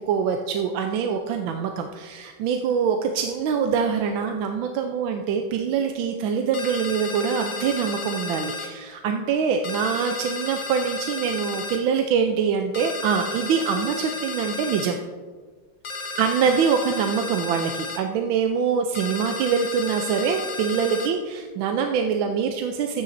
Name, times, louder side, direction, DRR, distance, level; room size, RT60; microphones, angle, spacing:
voice 1, 0.1-15.0 16.2-23.0, right 6 dB, 80° right, 4 dB, 1.4 m, -24 dB
sound 1, 6.5-8.7 9.6-11.8 12.7-14.9 15.8-18.0 18.9-21.1, left 3 dB, 70° left, 0.4 m, -33 dB
12.5 x 9.8 x 2.6 m, 1.5 s
omnidirectional pair, 2.2 m